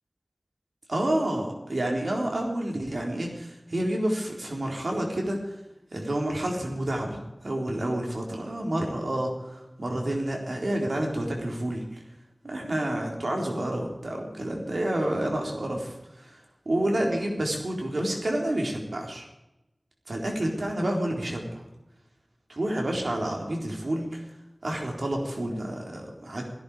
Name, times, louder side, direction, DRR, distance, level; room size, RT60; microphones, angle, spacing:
voice 1, 0.9-5.5 5.9-12.0 12.4-16.4 16.7-19.3 20.1-21.6 22.5-24.2 24.6-26.4, right 1 dB, 80° right, 0 dB, 3.9 m, -29 dB
16.5 x 15.0 x 5.0 m, 0.95 s
wide cardioid pair, 55°, 0 cm